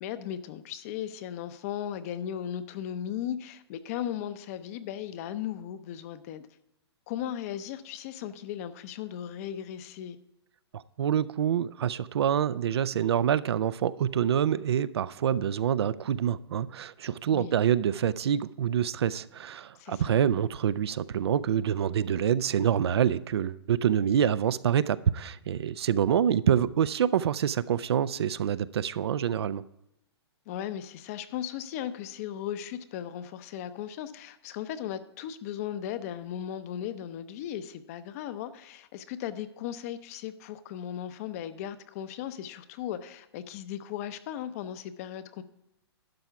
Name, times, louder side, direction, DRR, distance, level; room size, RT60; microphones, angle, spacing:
voice 1, 0.0-6.5 7.1-10.2 17.3-17.6 19.7-20.2 30.5-45.4, left 10 dB, 35° left, 0.6 m, -37 dB
voice 2, 10.7-29.6, right 9 dB, 70° right, 0.4 m, -26 dB
12.0 x 4.7 x 6.8 m
hypercardioid pair, 150°, 14 cm